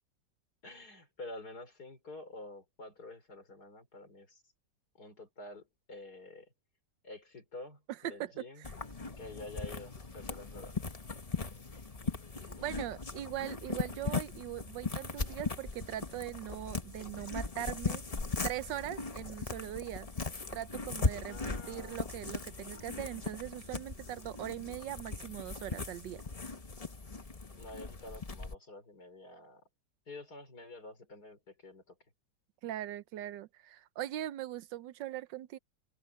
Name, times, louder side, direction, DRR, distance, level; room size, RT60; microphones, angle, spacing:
voice 1, 0.6-4.4 5.0-6.5 7.0-8.7 9.2-10.8 12.6-12.8 21.3-22.1 27.6-29.6 30.1-32.0, left 2 dB, 60° left, 5.6 m, -48 dB
voice 2, 7.9-8.7 12.6-18.0 18.4-20.1 20.5-26.2 32.6-35.6, right 13 dB, 80° right, 1.4 m, -40 dB
sound 1, 8.6-28.6, left 4 dB, 25° left, 1.0 m, -39 dB
omnidirectional pair, 1.9 m